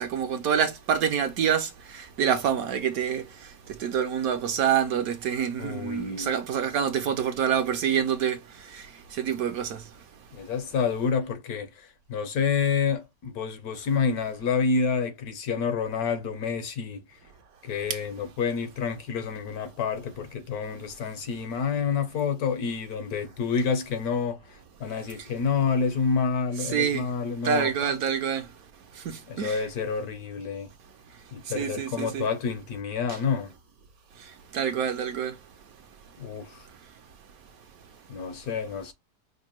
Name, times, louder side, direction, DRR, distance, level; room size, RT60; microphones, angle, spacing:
voice 1, 0.0-10.1 17.9-18.0 25.2-25.3 26.6-27.1 27.4-28.6 28.9-29.6 31.1-32.2 33.1-33.2 34.2-35.4 36.6-36.9, right 8 dB, 70° right, 0.9 m, -27 dB
voice 2, 5.6-6.3 10.3-17.0 17.6-27.9 29.3-30.7 31.3-33.5 36.2-36.7 38.1-38.9, left 5 dB, 65° left, 1.1 m, -28 dB
5.2 x 2.1 x 2.9 m
omnidirectional pair, 1.8 m